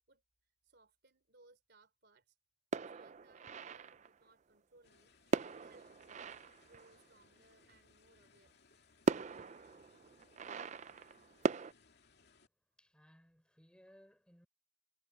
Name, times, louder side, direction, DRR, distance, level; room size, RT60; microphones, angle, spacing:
voice 1, 0.6-2.4 2.8-8.6, right 2 dB, 50° right, 3.5 m, -67 dB
sound 1, 2.7-4.2 5.3-7.3 8.5-8.6 9.1-11.7, right 4 dB, 35° right, 0.4 m, -39 dB
sound 2, 4.8-12.5, left 4 dB, 50° left, 2.7 m, -68 dB
voice 2, 12.2-14.5, equal, 5° left, 5.3 m, -64 dB
head